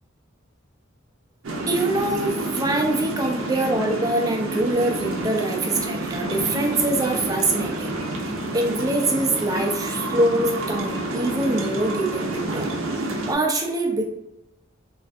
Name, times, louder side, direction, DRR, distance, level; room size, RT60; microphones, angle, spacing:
sound 1, 1.4-13.3, right 2 dB, 90° right, 0.5 m, -29 dB
voice 1, 1.7-12.7 13.0-14.1, right 2 dB, 20° right, 2 dB, 0.4 m, -24 dB
3.3 x 2.4 x 2.4 m, 0.88 s
head